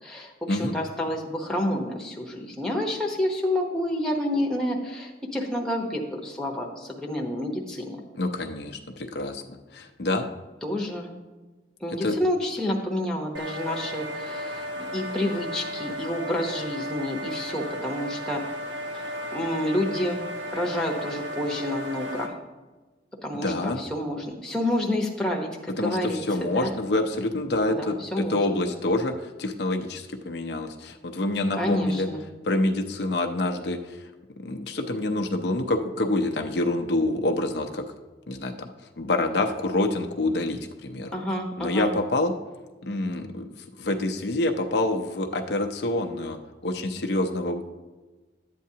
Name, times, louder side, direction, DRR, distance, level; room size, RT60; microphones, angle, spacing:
voice 1, 0.0-8.0 10.6-11.1 11.8-18.5 18.9-20.2 20.5-22.3 23.2-26.7 27.7-28.6 31.6-32.3 41.1-41.9, left 1 dB, 5° left, -1 dB, 0.9 m, -29 dB
voice 2, 8.1-10.3 12.0-12.2 23.3-23.8 25.8-32.1 32.4-34.0 34.4-37.8 38.3-38.7 39.0-41.1 41.6-42.3 42.8-43.5 43.8-47.6, left 2 dB, 65° left, 4 dB, 0.6 m, -27 dB
sound 1, 13.3-22.3, equal, 75° right, 1.3 m, -34 dB
11.0 x 8.4 x 2.8 m, 1.2 s
head